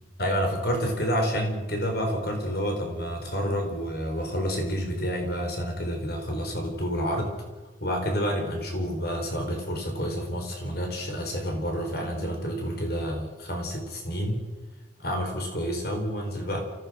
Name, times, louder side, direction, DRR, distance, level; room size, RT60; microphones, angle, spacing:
voice 1, 0.2-7.3 7.8-14.4 15.0-16.6, equal, 55° left, 3 dB, 4.6 m, -29 dB
28.0 x 15.0 x 6.4 m, 1.2 s
head